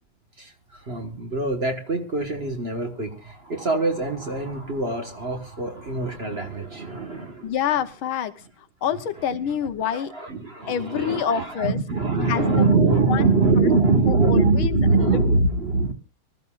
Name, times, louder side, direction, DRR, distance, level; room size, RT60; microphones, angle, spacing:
voice 1, 0.4-7.5 9.8-15.9, right 3 dB, 30° right, 4 dB, 1.5 m, -23 dB
voice 2, 7.4-10.1 10.7-11.8 12.3-12.5 13.1-15.2, left 8 dB, 75° left, 11 dB, 1.6 m, -27 dB
24.5 x 14.0 x 2.4 m, 0.33 s
omnidirectional pair, 2.3 m